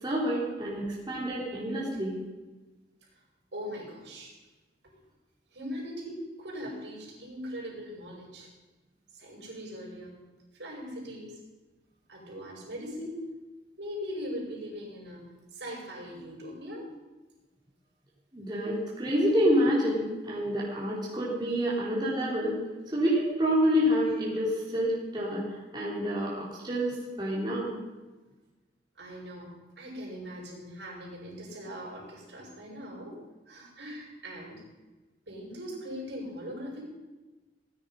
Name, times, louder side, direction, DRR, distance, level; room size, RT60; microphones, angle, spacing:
voice 1, 0.0-2.2 18.3-22.6 22.9-25.4 25.7-27.7, equal, 25° right, -6 dB, 3.8 m, -28 dB
voice 2, 3.5-4.4 4.8-4.9 5.5-8.5 9.1-10.2 10.5-11.4 12.1-13.2 13.8-16.9 29.0-34.6 35.3-36.9, equal, 75° right, -2 dB, 5.8 m, -40 dB
18.0 x 10.0 x 5.5 m, 1.2 s
head